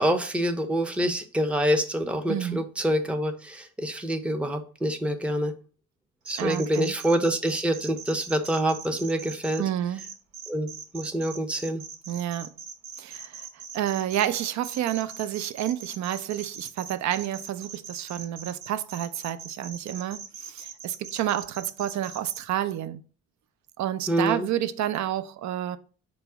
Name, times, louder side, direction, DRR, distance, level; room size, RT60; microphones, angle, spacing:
voice 1, 0.0-5.5 6.3-9.6 10.5-10.7 10.9-11.8 24.1-24.5, equal, 5° right, 0.5 m, -26 dB
voice 2, 2.3-2.6 6.4-6.9 9.6-10.0 12.1-12.5 13.0-23.0 23.8-25.8, right 11 dB, 65° right, 0.5 m, -30 dB
sound 1, 6.3-9.6 10.0-22.4, right 6 dB, 85° right, 0.9 m, -41 dB
4.5 x 2.0 x 4.5 m
cardioid pair, 90°, 30 cm